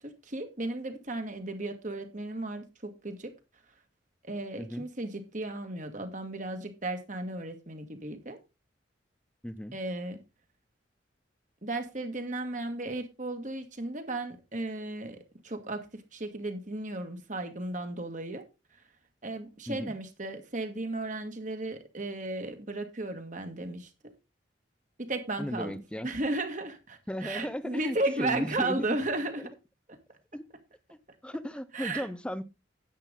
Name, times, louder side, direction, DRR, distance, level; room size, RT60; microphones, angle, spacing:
voice 1, 0.0-3.3 4.2-8.4 9.7-10.2 11.6-18.4 19.2-24.1 25.0-29.5 31.7-32.1, right 2 dB, 45° right, 1.8 m, -35 dB
voice 2, 9.4-9.8 19.7-19.9 25.4-26.1 27.1-29.0 29.4-29.5 30.3-30.4 31.2-32.4, equal, 5° left, 0.6 m, -35 dB
10.5 x 8.7 x 3.8 m
head